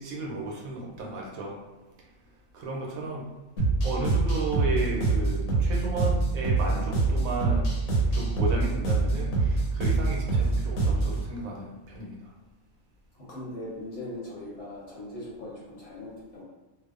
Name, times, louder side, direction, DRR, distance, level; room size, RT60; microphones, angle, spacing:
voice 1, 0.0-1.6 2.5-3.3 3.8-7.7 8.1-12.3, right 2 dB, 80° right, -3 dB, 1.0 m, -33 dB
sound 1, 3.6-11.2, right 3 dB, 80° left, 1.2 m, -25 dB
voice 2, 13.2-16.4, left 1 dB, 60° left, -8 dB, 0.9 m, -40 dB
2.5 x 2.0 x 2.3 m, 1.1 s
omnidirectional pair, 1.4 m